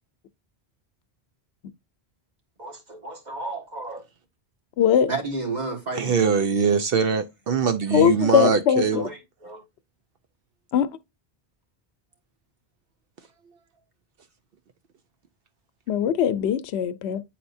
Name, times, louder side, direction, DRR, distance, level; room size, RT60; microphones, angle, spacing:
voice 1, 2.6-4.0 5.1-6.1 8.9-9.2 9.4-9.6, right 3 dB, 45° right, 1.8 m, -32 dB
voice 2, 4.8-5.1 7.9-9.0 10.7-10.9 15.9-17.2, left 9 dB, 85° left, 0.9 m, -21 dB
voice 3, 5.9-9.1, right 6 dB, 65° right, 0.8 m, -22 dB
9.3 x 4.3 x 2.6 m
omnidirectional pair, 1.1 m